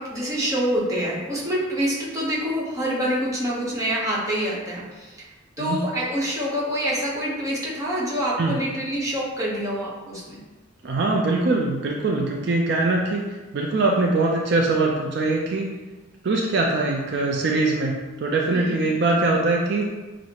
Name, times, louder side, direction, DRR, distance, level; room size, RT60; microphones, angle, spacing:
voice 1, 0.0-5.2 5.6-10.4 18.5-18.7, equal, 15° right, -6 dB, 0.9 m, -26 dB
voice 2, 10.8-15.7 16.2-19.9, right 2 dB, 55° right, -1 dB, 0.4 m, -22 dB
6.1 x 2.1 x 2.9 m, 1.2 s
head